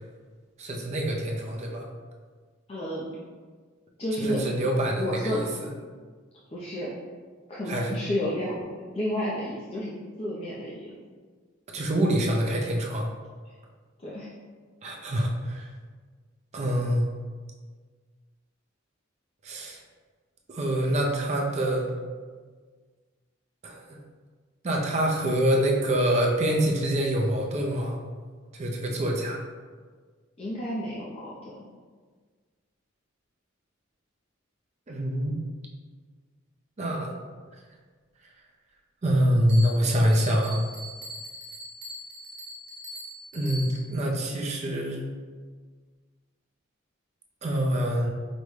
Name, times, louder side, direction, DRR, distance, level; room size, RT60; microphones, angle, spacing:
voice 1, 0.6-1.8 4.2-5.5 7.7-7.9 11.7-13.1 14.8-15.7 16.5-17.1 19.4-19.8 20.5-21.9 23.6-24.0 24.6-28.0 28.5-29.4 34.9-35.4 36.8-37.1 39.0-40.6 43.3-45.1 47.4-48.1, right 1 dB, 35° right, 0 dB, 0.5 m, -25 dB
voice 2, 2.7-3.1 4.0-4.4 5.0-5.4 6.5-6.9 7.5-8.6 8.9-9.9 10.2-10.9 14.0-14.3 30.4-31.7, left 1 dB, 30° left, -7 dB, 0.5 m, -31 dB
Bell, 39.5-44.0, equal, 55° right, 1.2 m, -41 dB
5.0 x 2.1 x 3.1 m, 1.5 s
head